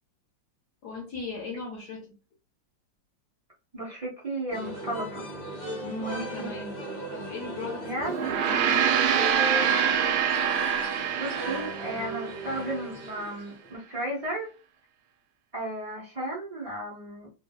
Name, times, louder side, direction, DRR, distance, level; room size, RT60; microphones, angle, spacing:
voice 1, 0.8-2.1 5.8-8.9, left 4 dB, 65° left, 1.2 m, -38 dB
voice 2, 3.7-5.3 6.0-6.5 7.8-8.3 11.2-14.5 15.5-17.3, right 1 dB, 65° right, 0.3 m, -34 dB
sound 1, 4.5-13.7, right 1 dB, 35° left, 0.7 m, -37 dB
Gong, 8.1-12.7, right 8 dB, 80° right, 1.3 m, -25 dB
3.1 x 2.1 x 2.2 m
omnidirectional pair, 2.0 m